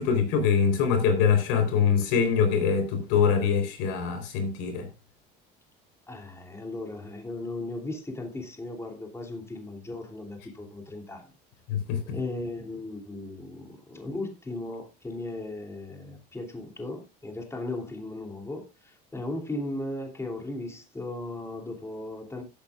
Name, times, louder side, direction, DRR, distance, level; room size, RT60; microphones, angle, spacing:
voice 1, 0.0-4.9 11.7-12.2, left 6 dB, 85° left, 4.0 m, -24 dB
voice 2, 6.1-11.3 12.0-22.4, left 2 dB, 15° left, 2.9 m, -37 dB
16.0 x 8.9 x 2.4 m
supercardioid pair, 105°, 21 cm